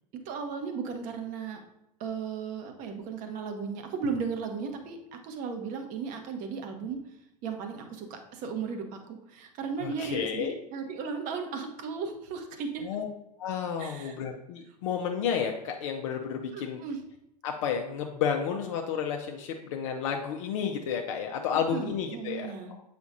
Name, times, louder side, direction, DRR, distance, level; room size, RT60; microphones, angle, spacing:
voice 1, 0.2-1.6 2.0-7.0 7.4-12.9 13.8-14.2 16.5-17.0 21.7-22.7, right 5 dB, 40° right, 5 dB, 1.1 m, -35 dB
voice 2, 9.8-10.5 12.8-13.1 13.4-16.8 17.4-22.8, left 7 dB, 50° left, 3 dB, 0.6 m, -31 dB
8.1 x 5.1 x 2.6 m, 0.84 s
figure-of-eight pair, 85°, 21 cm